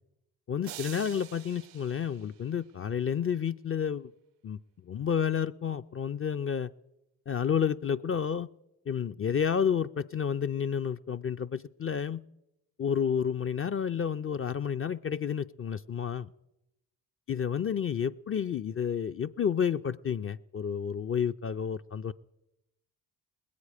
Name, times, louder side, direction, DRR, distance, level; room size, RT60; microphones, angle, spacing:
voice 1, 0.5-4.1 4.4-4.6 4.8-6.7 7.3-8.5 8.9-12.2 12.8-16.3 17.3-22.1, left 7 dB, 30° left, 10 dB, 0.4 m, -30 dB
sound 1, 0.6-2.9, right 15 dB, 70° right, 0.6 m, -47 dB
20.5 x 8.4 x 4.9 m, 0.91 s
hypercardioid pair, 40°, 47 cm